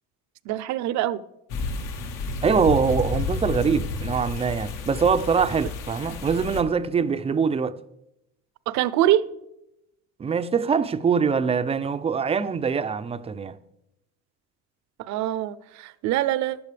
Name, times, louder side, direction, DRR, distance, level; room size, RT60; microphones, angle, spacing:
voice 1, 0.5-1.2 8.7-9.2 15.0-16.6, right 13 dB, 60° right, 0.6 m, -24 dB
sound 1, 1.5-6.6, left 4 dB, 75° left, 1.8 m, -31 dB
voice 2, 2.4-7.8 10.2-13.6, right 6 dB, 20° right, 0.4 m, -23 dB
15.0 x 11.0 x 3.4 m
cardioid pair, 130°, 33 cm